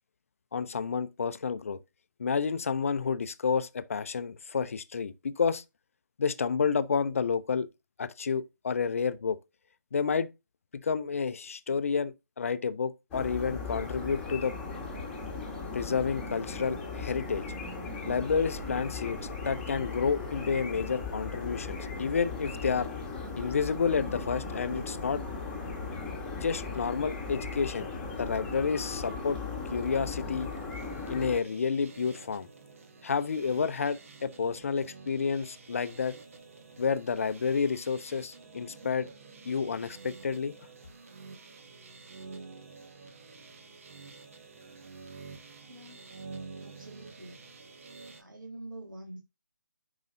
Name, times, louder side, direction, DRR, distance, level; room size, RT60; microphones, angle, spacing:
voice 1, 0.5-1.8 2.2-5.6 6.2-7.7 8.0-9.4 9.9-10.3 10.7-14.5 15.7-17.4 18.1-19.2 19.4-22.9 23.4-25.2 26.4-27.9 28.2-29.4 29.7-30.5 31.1-32.5 33.0-36.2 36.8-39.1 39.5-40.5, left 5 dB, 45° left, 0.5 m, -30 dB
sound 1, 13.1-31.4, left 4 dB, 10° left, 1.3 m, -37 dB
sound 2, 30.4-48.2, right 4 dB, 45° right, 1.1 m, -49 dB
voice 2, 45.7-46.0 46.6-47.4 48.2-49.2, right 1 dB, 85° right, 1.7 m, -46 dB
10.5 x 4.8 x 2.6 m
figure-of-eight pair, 150°, 10 cm